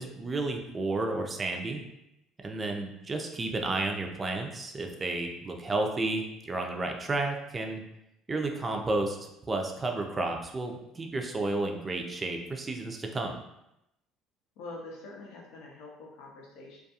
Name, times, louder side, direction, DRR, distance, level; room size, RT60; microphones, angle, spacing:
voice 1, 0.0-1.8 2.4-7.8 8.3-13.3, right 2 dB, 25° right, 3 dB, 0.4 m, -32 dB
voice 2, 14.6-16.8, left 2 dB, 75° left, -2 dB, 0.5 m, -45 dB
2.3 x 2.2 x 2.8 m, 0.85 s
supercardioid pair, 95°, 0 cm